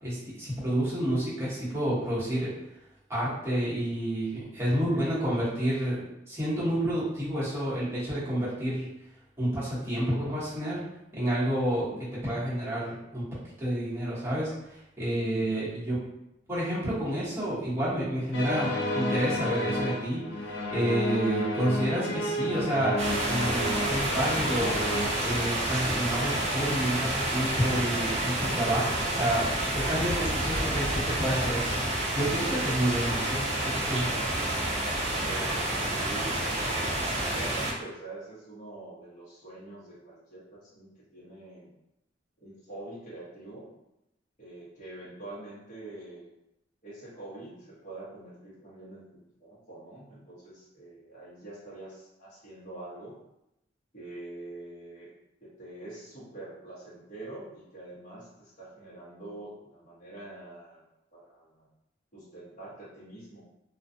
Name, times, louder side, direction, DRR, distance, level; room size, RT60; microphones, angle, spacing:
voice 1, 0.0-2.5 3.1-8.9 9.4-10.8 11.1-11.9 12.2-13.3 13.6-16.0 16.5-23.0 23.2-24.7 25.2-29.5 29.7-31.8 32.1-34.2, right 1 dB, 15° right, -10 dB, 1.0 m, -29 dB
voice 2, 15.3-15.7 35.2-41.7 42.4-43.7 44.4-46.3 46.8-53.2 53.9-55.1 55.4-60.8 61.1-61.7 62.1-63.4, right 2 dB, 45° left, -8 dB, 1.0 m, -45 dB
sound 1, 18.3-25.1, left 1 dB, 80° left, 0.4 m, -31 dB
sound 2, 23.0-37.7, right 1 dB, 40° right, 0.5 m, -29 dB
2.4 x 2.2 x 2.6 m, 0.87 s
head